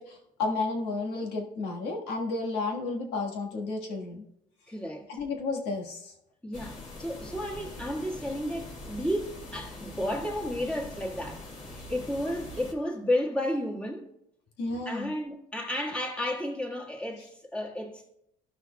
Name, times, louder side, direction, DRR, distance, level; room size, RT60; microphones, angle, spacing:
voice 1, 0.0-4.2 5.1-6.1 14.6-15.1, left 3 dB, 85° left, 1.6 m, -32 dB
voice 2, 4.7-5.1 6.4-11.4 11.7-14.1 14.8-18.1, left 1 dB, 5° left, 1.6 m, -32 dB
sound 1, 6.5-12.7, left 1 dB, 45° left, 1.6 m, -43 dB
13.5 x 6.0 x 2.3 m
cardioid pair, 110°, 17 cm